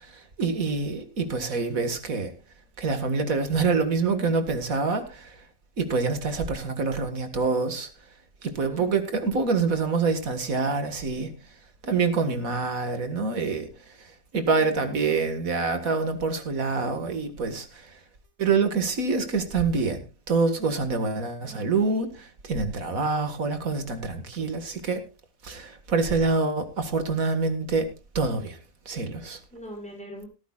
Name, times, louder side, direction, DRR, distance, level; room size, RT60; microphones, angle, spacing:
voice 1, 0.4-2.3 2.8-5.4 5.8-7.9 8.4-11.3 11.8-13.7 14.3-17.8 18.4-20.0 20.3-25.0 25.4-27.9 28.2-28.6 28.9-29.4, right 4 dB, 80° right, 2.3 m, -26 dB
voice 2, 21.4-22.0 29.5-30.3, right 1 dB, 5° left, 6.1 m, -42 dB
16.5 x 14.0 x 2.4 m
omnidirectional pair, 1.4 m